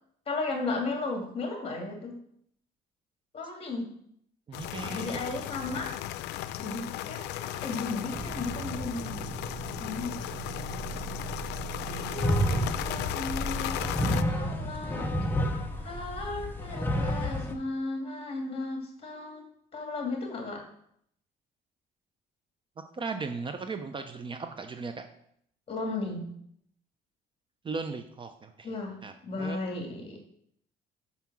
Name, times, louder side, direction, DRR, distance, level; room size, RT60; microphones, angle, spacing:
voice 1, 0.3-2.1 3.3-3.9 4.8-6.0 6.6-9.2 9.8-10.2 11.8-13.8 14.3-15.2 15.8-19.5 19.7-20.6 25.7-26.3 28.6-30.2, left 3 dB, 35° left, 2 dB, 2.5 m, -35 dB
sound 1, 4.5-14.2, left 13 dB, 85° left, 0.4 m, -36 dB
voice 2, 4.5-5.2 22.9-25.0 27.6-28.7 29.0-29.6, right 4 dB, 30° right, 7 dB, 0.6 m, -37 dB
sound 2, 8.1-14.7, right 6 dB, 75° right, 1.5 m, -40 dB
sound 3, 12.2-17.5, equal, 10° left, 1.0 m, -30 dB
5.7 x 5.6 x 6.1 m, 0.70 s
cardioid pair, 110°, 17 cm